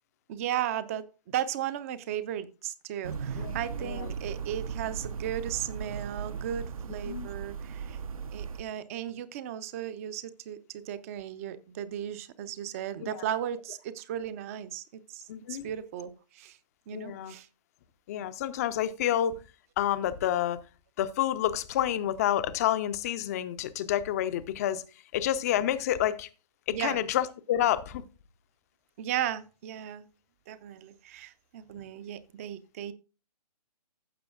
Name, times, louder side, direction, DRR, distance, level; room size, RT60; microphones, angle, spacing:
voice 1, 0.3-8.0 8.3-16.6 16.9-17.5 26.7-27.0 29.0-30.1 30.5-32.9, right 11 dB, 20° right, 0.5 m, -36 dB
sound 1, 3.0-8.6, right 6 dB, 60° right, 0.8 m, -37 dB
voice 2, 3.4-4.1 7.1-7.3 13.0-13.2 15.3-15.7 16.9-17.3 18.1-19.4 19.8-20.6 21.0-24.8 25.1-26.3 26.7-28.0, left 11 dB, 25° left, 0.5 m, -29 dB
15.0 x 6.8 x 2.4 m
figure-of-eight pair, 140°, 21 cm